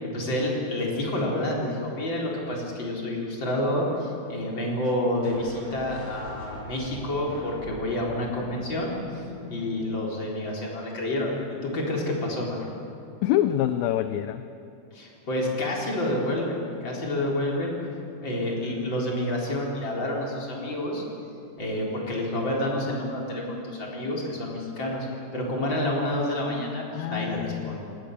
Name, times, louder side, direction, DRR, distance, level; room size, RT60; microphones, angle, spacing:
voice 1, 0.0-9.2 9.5-12.7 14.9-17.8 18.2-21.0 21.6-25.1 25.3-27.8, left 1 dB, 30° left, -3 dB, 4.5 m, -29 dB
sound 1, 5.2-10.4, right 1 dB, 40° right, 5.1 m, -42 dB
voice 2, 13.2-14.4 26.9-27.8, left 12 dB, 80° left, 10 dB, 2.2 m, -26 dB
26.5 x 19.5 x 6.8 m, 2.6 s
omnidirectional pair, 4.6 m